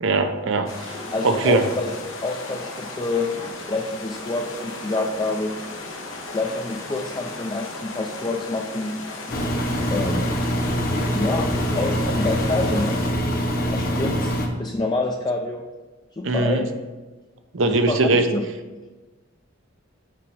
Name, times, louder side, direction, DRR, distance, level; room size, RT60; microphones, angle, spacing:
voice 1, 0.0-1.0 1.2-1.6 16.2-16.6 17.5-18.2, right 3 dB, 70° right, 7 dB, 0.7 m, -20 dB
sound 1, 0.7-13.1, left 2 dB, 90° left, 1.1 m, -36 dB
voice 2, 1.1-1.9 2.2-3.3 3.6-5.6 6.3-9.0 9.9-10.4 11.1-11.5 11.8-13.0 13.7-14.3 14.6-15.6 16.1-16.7 17.7-18.5, left 2 dB, 20° left, 2 dB, 0.4 m, -27 dB
Engine, 9.3-14.5, equal, 50° left, 0.9 m, -24 dB
5.8 x 5.1 x 4.9 m, 1.3 s
head